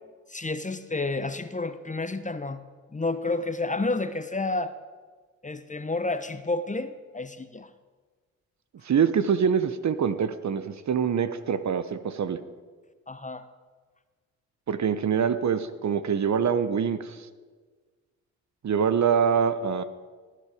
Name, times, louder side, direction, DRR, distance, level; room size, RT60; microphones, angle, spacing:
voice 1, 0.3-2.6 2.9-4.7 5.4-7.7 13.1-13.5, left 3 dB, 20° left, 12 dB, 1.0 m, -30 dB
voice 2, 8.8-12.4 14.7-17.1 18.6-19.8, right 7 dB, 45° right, 12 dB, 1.1 m, -24 dB
19.5 x 11.0 x 5.1 m, 1.5 s
hypercardioid pair, 45°, 40 cm